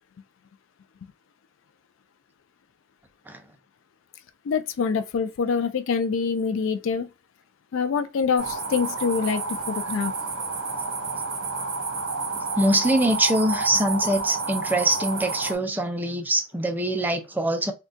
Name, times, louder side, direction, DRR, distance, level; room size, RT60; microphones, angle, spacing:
voice 1, 4.5-7.1 7.7-10.1, left 5 dB, 70° left, 0.4 m, -25 dB
sound 1, 8.4-15.6, right 3 dB, 70° right, 1.2 m, -30 dB
voice 2, 12.5-17.7, right 1 dB, 10° right, 0.4 m, -23 dB
3.7 x 2.3 x 2.5 m
head